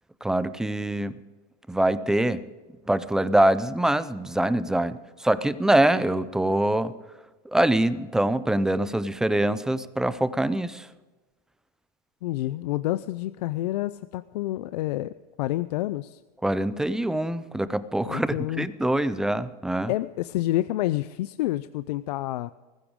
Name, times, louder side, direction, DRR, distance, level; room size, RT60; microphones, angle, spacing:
voice 1, 0.2-1.2 1.7-2.4 2.9-6.9 7.5-10.9 16.4-19.9, right 1 dB, 5° right, 15 dB, 0.4 m, -24 dB
voice 2, 12.2-16.2 18.1-18.7 19.9-22.5, left 15 dB, 75° left, 15 dB, 0.5 m, -28 dB
19.5 x 15.5 x 3.6 m, 1.2 s
supercardioid pair, 150°, 21 cm